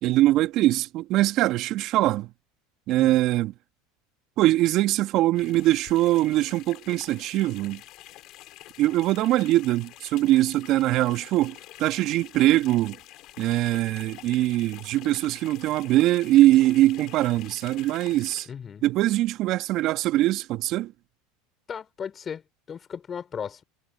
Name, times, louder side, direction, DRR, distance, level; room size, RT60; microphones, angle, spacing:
voice 1, 0.0-2.3 2.9-3.5 4.4-7.8 8.8-13.0 13.4-18.5 18.8-20.9, right 16 dB, 55° right, 2.2 m, -22 dB
sound 1, 5.3-18.5, left 17 dB, 55° left, 7.1 m, -47 dB
voice 2, 18.5-18.8 21.7-22.4 22.7-23.6, left 7 dB, 30° left, 5.6 m, -36 dB
hypercardioid pair, 90°, 0 cm